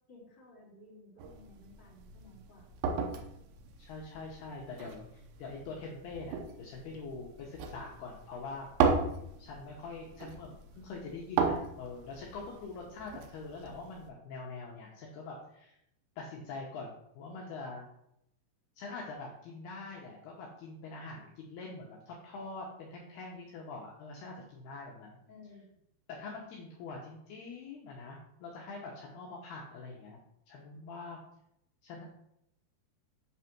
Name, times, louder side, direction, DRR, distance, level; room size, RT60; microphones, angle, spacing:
voice 1, 0.1-2.7 25.3-25.7, left 2 dB, 10° left, -6 dB, 1.5 m, -55 dB
sound 1, 1.2-14.1, right 5 dB, 80° right, 3.2 m, -36 dB
voice 2, 3.8-8.7 9.4-15.7 16.2-17.8 18.8-25.2 26.2-30.2 30.5-31.2 31.8-32.0, left 3 dB, 70° left, -3 dB, 2.5 m, -44 dB
8.4 x 4.1 x 5.9 m, 0.77 s
omnidirectional pair, 5.7 m